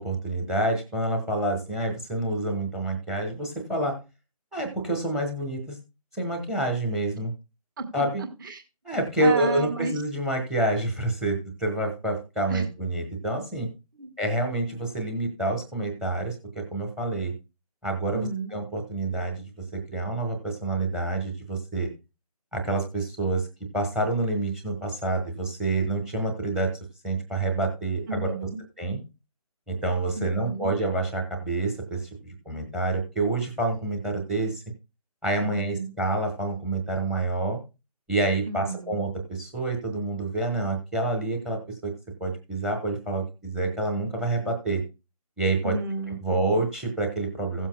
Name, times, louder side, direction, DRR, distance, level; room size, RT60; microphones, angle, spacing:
voice 1, 0.0-3.9 4.5-5.8 6.1-7.3 7.9-8.2 8.8-13.7 14.2-17.3 17.8-21.9 22.5-23.5 23.7-26.7 27.0-28.3 28.8-29.0 29.7-34.6 35.2-37.6 38.1-41.9 42.2-44.8 45.4-45.8 46.2-47.7, right 2 dB, 5° right, 5 dB, 1.1 m, -28 dB
voice 2, 7.8-8.6 9.2-10.0 12.5-12.7 14.0-14.1 18.1-18.5 28.1-28.6 30.2-30.7 35.4-35.9 38.5-39.0 45.6-46.6, right 3 dB, 30° right, 6 dB, 1.7 m, -32 dB
16.5 x 7.3 x 2.2 m, 0.29 s
figure-of-eight pair, 155°, 20 cm